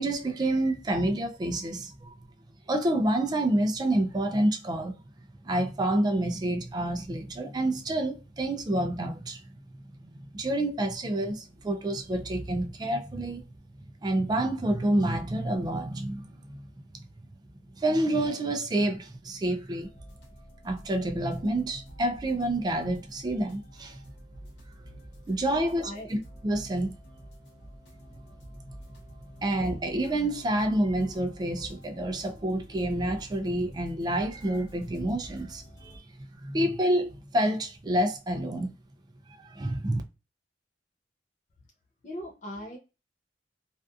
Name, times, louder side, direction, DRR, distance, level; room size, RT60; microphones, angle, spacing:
voice 1, 0.0-2.1 2.7-4.9 5.4-9.4 10.1-13.4 14.0-16.6 17.8-19.9 20.6-24.0 25.3-26.9 29.4-36.0 36.3-38.8 39.4-40.0, right 1 dB, 25° right, 0.3 m, -28 dB
sound 1, 19.8-36.0, equal, 65° left, 0.8 m, -49 dB
voice 2, 25.5-26.1 42.0-42.8, left 1 dB, 45° left, 0.5 m, -39 dB
2.6 x 2.3 x 2.3 m
head